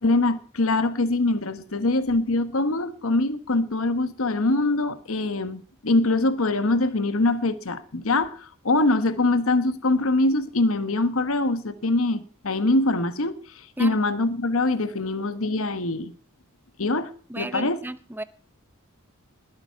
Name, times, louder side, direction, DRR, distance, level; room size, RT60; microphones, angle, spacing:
voice 1, 0.0-16.1 16.8-17.1 17.4-17.8, left 2 dB, 70° left, 1.2 m, -23 dB
voice 2, 17.3-18.2, right 1 dB, 10° right, 0.7 m, -33 dB
20.0 x 9.0 x 5.7 m
head